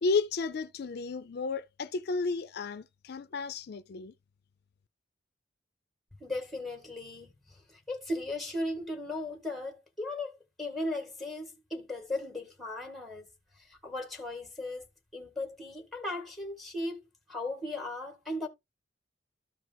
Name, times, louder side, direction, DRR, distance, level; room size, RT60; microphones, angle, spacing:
voice 1, 0.0-4.1, left 4 dB, 55° left, 0.4 m, -32 dB
voice 2, 6.2-13.3 13.6-14.9 15.1-17.0 17.3-18.5, left 1 dB, ahead, 1.6 m, -37 dB
13.5 x 4.7 x 2.3 m
head